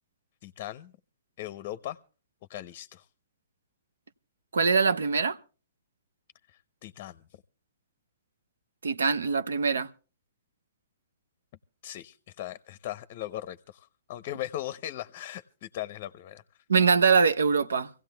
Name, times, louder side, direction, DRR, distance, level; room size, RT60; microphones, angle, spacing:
voice 1, 0.4-0.9 1.4-2.0 2.5-3.1 6.5-7.3 11.8-16.4, left 13 dB, 45° left, 0.6 m, -39 dB
voice 2, 4.5-5.4 8.8-9.9 16.7-17.9, right 5 dB, 80° right, 0.7 m, -23 dB
26.0 x 16.5 x 2.2 m
hypercardioid pair, 135°, 0 cm